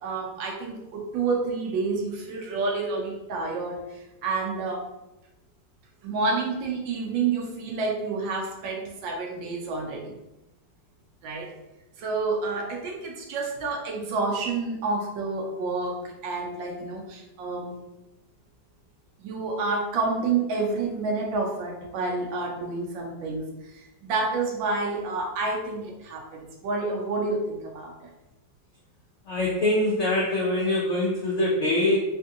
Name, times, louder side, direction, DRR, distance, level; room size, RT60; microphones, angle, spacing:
voice 1, 0.0-4.9 6.0-10.1 11.2-11.5 12.0-17.7 19.2-28.1, right 3 dB, 90° right, 0 dB, 1.4 m, -29 dB
voice 2, 29.3-32.0, left 1 dB, 90° left, -5 dB, 0.6 m, -24 dB
3.5 x 2.6 x 2.4 m, 0.96 s
omnidirectional pair, 2.0 m